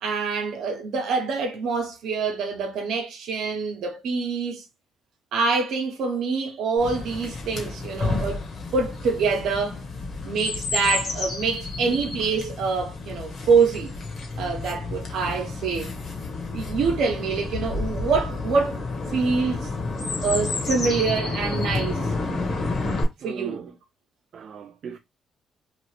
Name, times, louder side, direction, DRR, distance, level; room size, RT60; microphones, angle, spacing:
voice 1, 0.0-4.6 5.3-8.4 8.7-9.8 10.2-13.9 14.4-15.9 16.5-18.8 19.1-19.7 20.2-22.0 23.2-23.7, right 4 dB, 75° right, 0.9 m, -25 dB
Chirp tweet, 6.8-23.0, left 3 dB, 50° left, 1.2 m, -30 dB
voice 2, 23.2-23.7 24.3-25.0, right 7 dB, 60° right, 0.3 m, -37 dB
3.0 x 2.4 x 3.1 m
cardioid pair, 90°, 0 cm